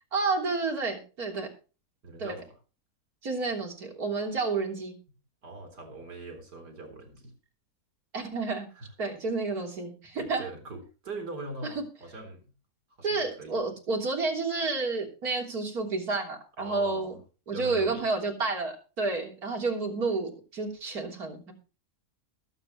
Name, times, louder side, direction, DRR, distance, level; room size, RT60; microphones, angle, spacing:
voice 1, 0.1-1.5 2.2-2.3 3.2-4.9 8.1-8.7 9.0-10.4 13.0-17.2 17.5-21.5, right 3 dB, 65° right, 1 dB, 3.7 m, -30 dB
voice 2, 2.0-2.5 5.4-7.3 8.8-8.9 10.1-12.4 13.0-13.6 16.6-17.2 17.5-18.1, right 3 dB, 80° right, 5 dB, 4.4 m, -41 dB
21.0 x 8.1 x 3.1 m, 0.33 s
omnidirectional pair, 1.7 m